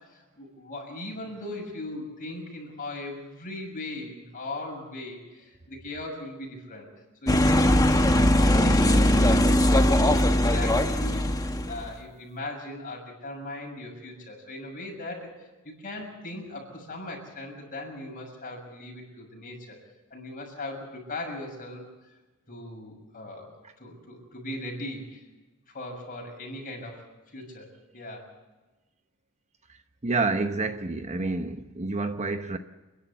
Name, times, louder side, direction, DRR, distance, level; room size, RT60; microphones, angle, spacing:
voice 1, 0.1-6.9 7.2-15.3 15.6-19.8 20.1-21.8 22.5-23.5 23.8-25.2 25.7-27.7 27.9-28.3, left 2 dB, 40° left, 6.7 m, -39 dB
sound 1, 7.3-11.9, left 1 dB, 15° left, 1.2 m, -20 dB
voice 2, 30.0-32.6, right 3 dB, 30° right, 0.9 m, -28 dB
29.0 x 11.5 x 8.4 m
head